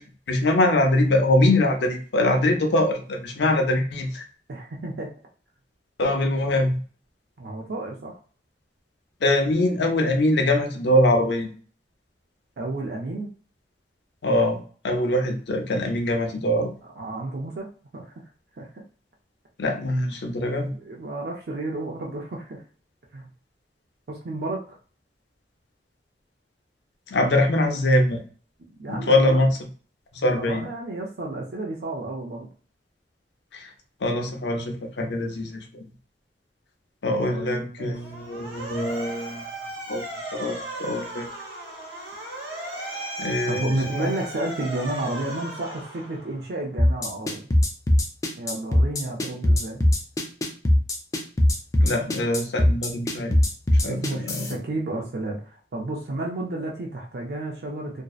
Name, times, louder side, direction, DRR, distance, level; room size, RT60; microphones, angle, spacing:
voice 1, 0.3-4.2 6.0-6.8 9.2-11.5 14.2-14.6 14.8-16.7 19.6-20.7 27.1-28.2 28.9-29.5 30.1-30.7 33.5-33.7 34.0-35.9 37.0-39.4 39.9-40.0 40.3-41.3 43.2-44.1 51.8-53.4 53.7-54.6, left 1 dB, 75° left, 4 dB, 0.5 m, -23 dB
voice 2, 4.5-5.1 7.4-8.2 12.6-13.3 17.0-17.7 17.9-18.3 18.6-18.7 19.9-20.0 20.6-22.6 23.1-23.3 24.1-24.6 28.8-29.5 30.4-32.5 37.3-37.9 43.5-47.5 48.4-49.8 53.8-58.0, right 2 dB, 60° right, -1 dB, 0.5 m, -32 dB
Motor vehicle (road) / Siren, 37.9-46.5, right 1 dB, 85° right, 0.8 m, -36 dB
sound 1, 46.8-54.5, left 1 dB, 20° left, 0.3 m, -20 dB
2.6 x 2.0 x 2.3 m, 0.41 s
head